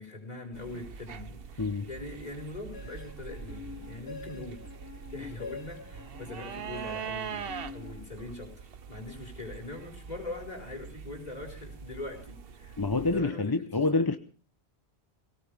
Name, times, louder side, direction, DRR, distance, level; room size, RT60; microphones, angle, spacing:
voice 1, 0.0-4.6 4.9-14.1, left 2 dB, 40° left, 5.2 m, -42 dB
sound 1, 0.5-13.2, right 7 dB, 65° right, 1.1 m, -43 dB
voice 2, 1.6-1.9 12.8-14.2, left 3 dB, 25° left, 0.7 m, -27 dB
sound 2, 2.7-8.6, left 4 dB, 65° left, 1.4 m, -46 dB
21.0 x 18.0 x 3.4 m
omnidirectional pair, 1.1 m